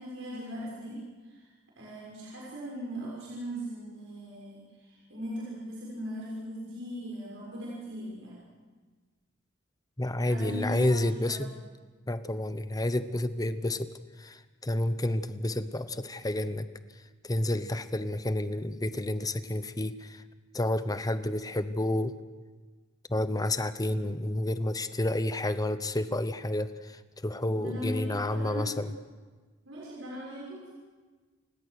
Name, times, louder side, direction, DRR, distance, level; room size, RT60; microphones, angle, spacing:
voice 1, 0.0-1.5 1.8-8.4 10.2-11.5 27.5-28.7 29.6-30.7, equal, 70° right, -6 dB, 6.4 m, -39 dB
voice 2, 10.0-11.5 12.1-13.9 14.2-16.7 17.2-20.2 20.5-22.2 23.1-28.9, left 1 dB, 20° left, 12 dB, 0.9 m, -30 dB
29.5 x 17.0 x 6.6 m, 1.4 s
head